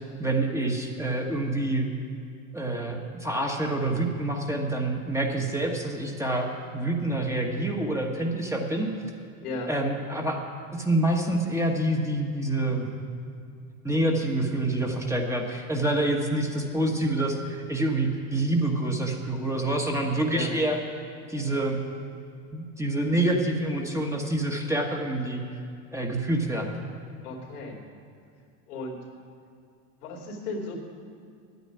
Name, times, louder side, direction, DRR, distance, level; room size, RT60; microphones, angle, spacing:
voice 1, 0.2-1.9 2.5-8.9 9.7-10.4 10.7-12.9 13.8-20.8 21.3-21.8 22.5-25.4 25.9-26.7, right 1 dB, 5° right, 1 dB, 1.3 m, -27 dB
voice 2, 9.4-9.7 20.3-20.5 27.2-27.8 28.7-29.0 30.0-30.8, left 2 dB, 90° left, 0 dB, 2.8 m, -35 dB
9.2 x 9.2 x 9.7 m, 2.5 s
supercardioid pair, 115°, 43 cm